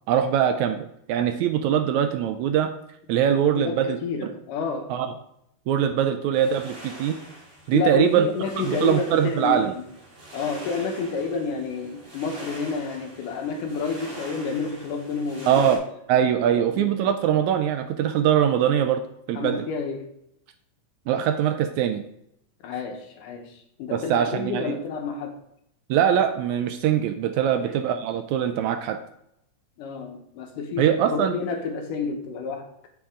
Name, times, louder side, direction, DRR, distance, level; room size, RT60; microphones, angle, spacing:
voice 1, 0.1-2.7 3.1-4.3 4.9-5.1 5.7-7.2 7.7-8.3 8.6-9.7 15.5-15.8 16.1-19.0 19.3-19.6 21.1-22.0 23.9-24.8 25.9-29.0 30.8-31.4, right 9 dB, 80° right, 7 dB, 1.8 m, -22 dB
voice 2, 3.6-4.9 7.7-9.8 10.3-15.7 16.5-17.0 19.4-20.1 22.6-25.4 27.4-27.6 29.8-32.7, left 5 dB, 85° left, 3 dB, 2.7 m, -30 dB
sound 1, 6.3-15.8, right 1 dB, 25° right, 2.0 m, -43 dB
7.2 x 7.1 x 3.7 m, 0.75 s
omnidirectional pair, 3.6 m